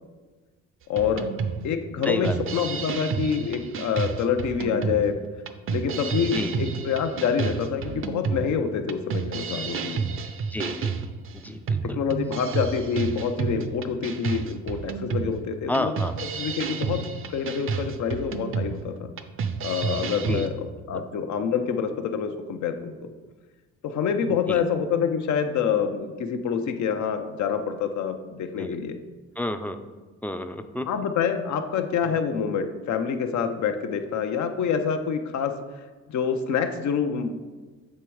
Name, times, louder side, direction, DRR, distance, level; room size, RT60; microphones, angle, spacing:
voice 1, 0.9-1.3 1.6-5.2 5.7-10.0 11.9-15.9 16.3-17.0 17.3-19.1 19.6-23.1 23.8-28.9 30.9-35.5 36.1-37.3, left 7 dB, 70° left, 7 dB, 0.7 m, -27 dB
sound 1, 1.0-20.5, right 5 dB, 45° right, 0.5 m, -30 dB
voice 2, 10.5-11.0 11.3-11.8 15.7-16.1 20.3-20.4 20.9-21.0 24.5-24.6 28.6-28.8 29.4-29.8 30.2-30.8, left 1 dB, 5° left, 8 dB, 0.4 m, -29 dB
7.4 x 3.4 x 4.7 m, 1.3 s
cardioid pair, 90°, 30 cm